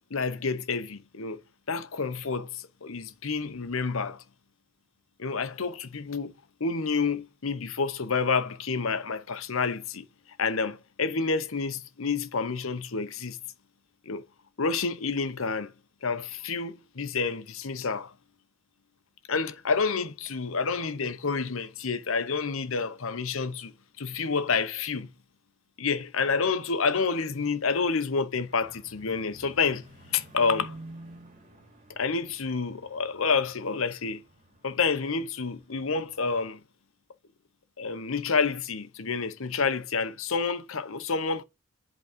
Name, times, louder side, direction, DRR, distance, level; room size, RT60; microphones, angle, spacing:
voice 1, 0.1-1.4 1.7-4.2 5.2-6.3 6.6-10.0 10.4-13.4 14.1-14.2 14.6-15.7 16.0-18.1 19.3-25.1 25.8-29.8 30.1-30.8 32.0-34.2 34.6-36.6 37.8-41.4, left 5 dB, 70° left, 0.9 m, -29 dB
sound 1, 28.4-35.4 35.8-36.3, right 2 dB, 40° right, 2.5 m, -49 dB
8.2 x 3.9 x 5.2 m
head